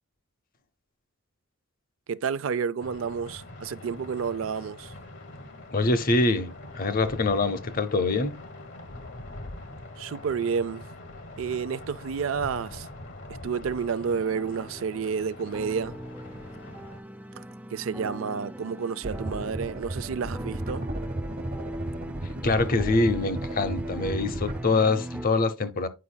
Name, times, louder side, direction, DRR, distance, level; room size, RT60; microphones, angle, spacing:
voice 1, 2.1-4.9 10.0-10.9 11.4-12.9 13.3-16.0 17.4-17.5 17.7-20.9, right 6 dB, 80° right, 0.4 m, -30 dB
sound 1, 2.8-17.0, left 1 dB, 65° left, 1.2 m, -43 dB
voice 2, 5.7-8.4 22.4-25.9, left 3 dB, 45° left, 0.7 m, -24 dB
sound 2, 14.0-25.3, right 1 dB, 10° right, 0.3 m, -40 dB
sound 3, 19.0-24.6, right 1 dB, 45° right, 1.1 m, -34 dB
8.4 x 5.0 x 2.2 m
head